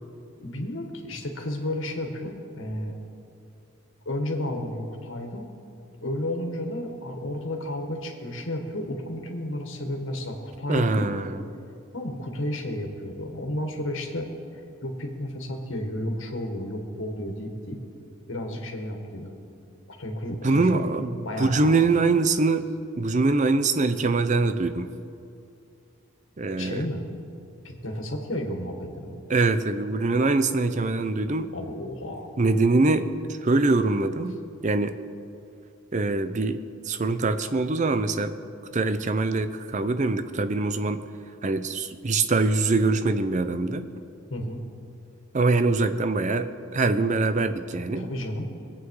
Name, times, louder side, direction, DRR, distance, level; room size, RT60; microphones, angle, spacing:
voice 1, 0.4-2.9 4.0-5.5 6.0-11.1 11.9-17.8 18.3-19.3 20.0-20.9 21.2-21.8 26.6-27.1 27.6-29.2 31.5-32.3 44.3-44.7 48.0-48.5, left 1 dB, 65° left, 2 dB, 1.8 m, -32 dB
voice 2, 10.7-11.3 20.4-22.7 23.0-24.9 26.4-26.9 29.3-31.5 32.4-33.1 33.4-35.0 35.9-38.3 38.7-41.0 41.4-43.9 45.3-48.1, right 3 dB, 35° right, 10 dB, 0.6 m, -23 dB
21.5 x 8.6 x 4.8 m, 2.5 s
head